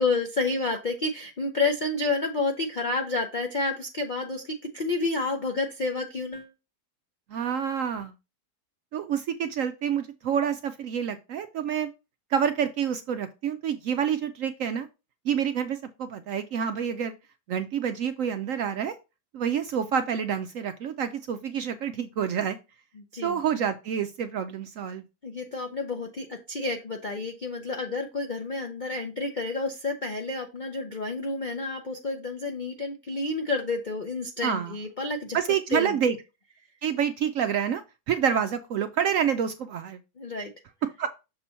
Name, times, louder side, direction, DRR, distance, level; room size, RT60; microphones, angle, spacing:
voice 1, 0.0-6.5 23.0-23.4 25.2-35.4 35.7-36.0 40.2-40.5, left 3 dB, 55° left, 4 dB, 0.5 m, -30 dB
voice 2, 7.3-8.1 8.9-11.9 12.3-14.9 15.2-17.1 17.5-18.9 19.3-22.6 23.2-25.0 34.4-34.7 35.3-36.2 36.8-37.8 38.1-40.0 41.0-41.1, right 8 dB, 70° right, 9 dB, 0.8 m, -28 dB
6.7 x 2.8 x 5.5 m, 0.27 s
omnidirectional pair, 1.8 m